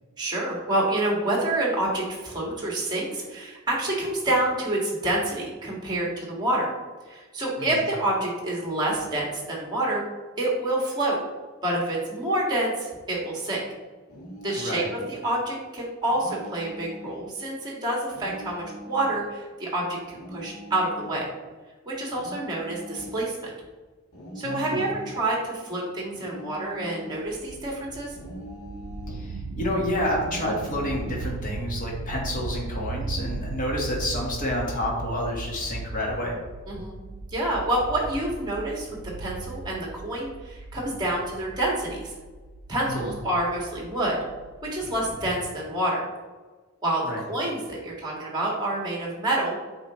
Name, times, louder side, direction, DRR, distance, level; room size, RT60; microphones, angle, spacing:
voice 1, 0.2-6.7 7.1-10.0 10.4-11.2 11.6-13.6 14.4-21.3 21.9-23.5 24.4-28.1 36.7-37.0 37.3-38.9 39.2-42.1 42.7-44.2 44.6-46.0 46.8-49.6, right 1 dB, 20° right, -3 dB, 1.9 m, -28 dB
sound 1, 14.1-15.2 16.1-17.2 18.1-19.2 20.1-21.2 22.1-23.3 24.1-25.3 26.1-27.3 28.1-29.3 30.1-31.3, left 1 dB, 75° left, 1.6 m, -41 dB
voice 2, 14.6-14.9 24.4-24.9 29.1-36.4 42.8-43.1 47.1-47.2, left 1 dB, 35° left, -2 dB, 1.5 m, -29 dB
sound 2, 27.3-45.1, right 3 dB, 75° right, 0.4 m, -37 dB
8.0 x 5.0 x 3.1 m, 1.3 s
head